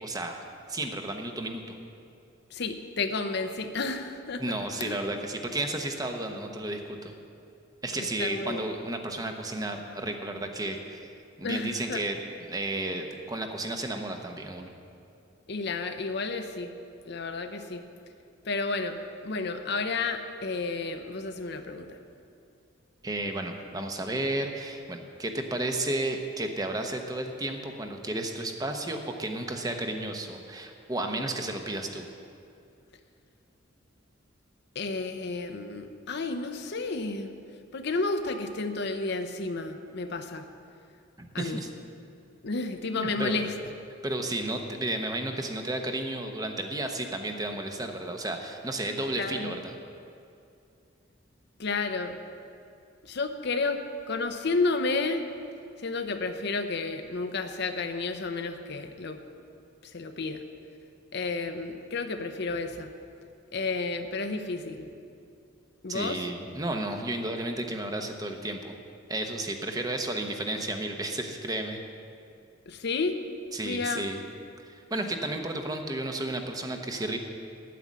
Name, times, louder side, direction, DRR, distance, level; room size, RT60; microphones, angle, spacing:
voice 1, 0.0-0.4 0.7-1.8 4.4-7.1 7.8-11.1 11.4-12.2 12.5-14.7 23.0-32.1 41.2-41.7 43.0-43.4 44.0-49.8 65.9-68.8 69.1-71.8 73.5-74.2 74.6-77.2, right 1 dB, 20° right, 4 dB, 0.9 m, -32 dB
voice 2, 2.5-4.4 4.8-5.0 7.9-8.6 11.4-12.0 15.5-16.7 17.1-17.8 18.4-21.9 34.7-37.3 37.7-40.4 41.3-41.6 42.4-43.5 49.2-49.5 51.6-52.2 53.0-53.8 54.1-55.3 55.8-59.2 59.9-60.4 61.1-62.9 63.5-64.9 65.8-66.3 72.7-73.2 73.6-74.0, left 3 dB, 60° left, 7 dB, 0.7 m, -31 dB
9.6 x 9.2 x 7.4 m, 2.5 s
head